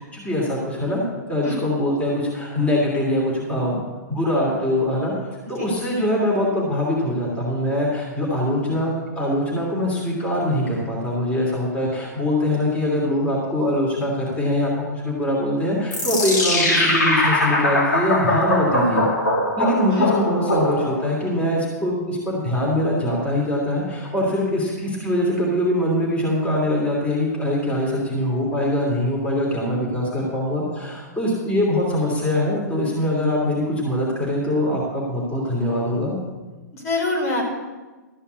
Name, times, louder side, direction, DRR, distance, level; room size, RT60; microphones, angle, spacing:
voice 1, 0.1-1.0 1.3-3.8 4.1-5.1 5.5-19.0 19.6-36.2, left 1 dB, 15° left, -3 dB, 2.9 m, -23 dB
sound 1, 15.9-21.2, left 1 dB, 80° left, 2.6 m, -21 dB
voice 2, 36.7-37.4, left 2 dB, 55° left, -1 dB, 4.6 m, -25 dB
13.0 x 5.6 x 8.2 m, 1.2 s
hypercardioid pair, 125°, 10 cm